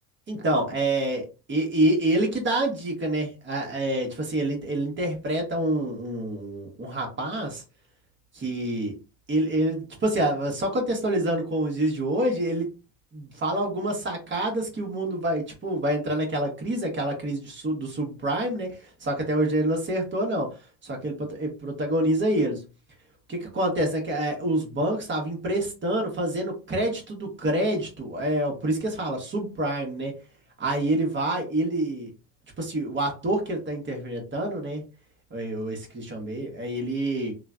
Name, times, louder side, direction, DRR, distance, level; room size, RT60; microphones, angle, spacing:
voice 1, 0.3-7.6 8.3-8.9 9.3-12.7 13.1-20.5 20.8-22.6 23.3-30.1 30.6-32.1 32.6-34.8 35.3-37.3, right 1 dB, 25° right, 1 dB, 1.2 m, -27 dB
3.1 x 2.2 x 2.5 m, 0.31 s
supercardioid pair, 90°, 41 cm